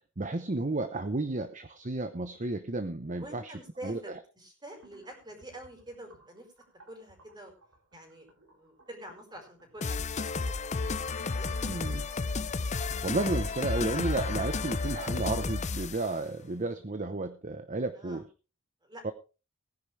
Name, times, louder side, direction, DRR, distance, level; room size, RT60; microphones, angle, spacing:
voice 1, 0.2-3.5 3.8-4.2 10.9-11.0 11.7-12.1 12.7-18.3 19.0-19.1, right 2 dB, 40° right, 10 dB, 0.9 m, -33 dB
voice 2, 3.2-6.5 6.9-7.5 7.9-10.0 10.5-11.8 18.0-18.2 18.8-19.1, right 1 dB, 20° right, 3 dB, 4.9 m, -47 dB
sound 1, 4.7-12.0, right 2 dB, 75° right, 4.1 m, -61 dB
sound 2, 9.8-16.1, left 4 dB, 35° left, 0.6 m, -32 dB
19.5 x 10.5 x 3.3 m, 0.33 s
head